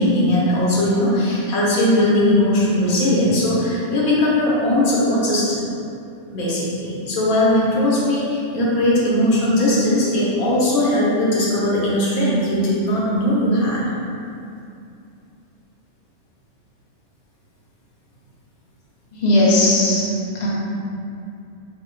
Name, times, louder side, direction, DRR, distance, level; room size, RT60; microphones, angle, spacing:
voice 1, 0.0-5.6 6.3-13.9, left 1 dB, 85° left, -6 dB, 1.4 m, -19 dB
voice 2, 19.1-20.0 20.3-20.5, left 1 dB, 40° left, -6 dB, 0.7 m, -17 dB
4.8 x 2.2 x 3.8 m, 2.5 s
omnidirectional pair, 1.5 m